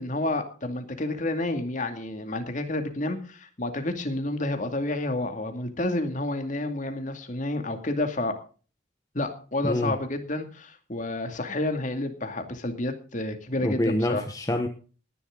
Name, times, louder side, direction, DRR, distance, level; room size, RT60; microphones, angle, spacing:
voice 1, 0.0-8.4 9.1-14.2, left 2 dB, 45° left, 6 dB, 2.4 m, -30 dB
voice 2, 13.6-14.7, left 1 dB, 20° left, 5 dB, 1.2 m, -26 dB
19.0 x 11.0 x 3.8 m, 0.38 s
head